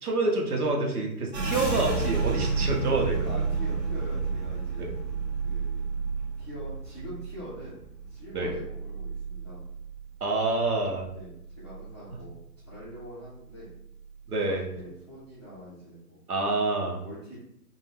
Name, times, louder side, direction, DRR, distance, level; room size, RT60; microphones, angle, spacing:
voice 1, 0.0-3.4 4.8-4.9 8.3-8.5 10.2-11.0 14.3-14.7 16.3-17.0, right 2 dB, 65° right, 0 dB, 1.0 m, -27 dB
sound 1, 1.3-10.7 11.0-12.3 12.6-13.1 13.5-14.1, right 4 dB, 45° right, 0.6 m, -32 dB
sound 2, 1.5-4.2, left 4 dB, 65° left, 0.6 m, -44 dB
voice 2, 3.2-4.9 5.4-5.8 6.4-9.7 11.1-12.4 12.6-13.7 14.4-16.2 17.0-17.4, equal, 20° left, -12 dB, 0.5 m, -44 dB
2.6 x 2.2 x 3.3 m, 0.76 s
figure-of-eight pair, 135°, 48 cm